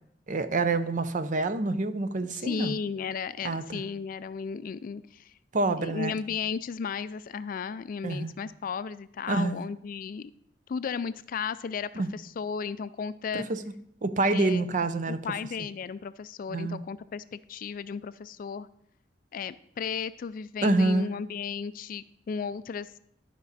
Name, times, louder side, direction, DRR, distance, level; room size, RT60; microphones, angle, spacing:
voice 1, 0.3-2.7 3.4-3.8 5.5-6.1 8.0-8.3 9.3-9.6 12.0-12.1 13.3-13.6 14.0-15.2 16.5-16.8 20.6-21.1, right 2 dB, 45° right, 11 dB, 0.6 m, -27 dB
voice 2, 2.3-5.3 5.8-10.3 10.7-13.4 14.3-14.7 15.1-18.7 19.3-22.9, left 6 dB, 50° left, 15 dB, 0.3 m, -34 dB
12.5 x 5.3 x 4.1 m, 0.71 s
head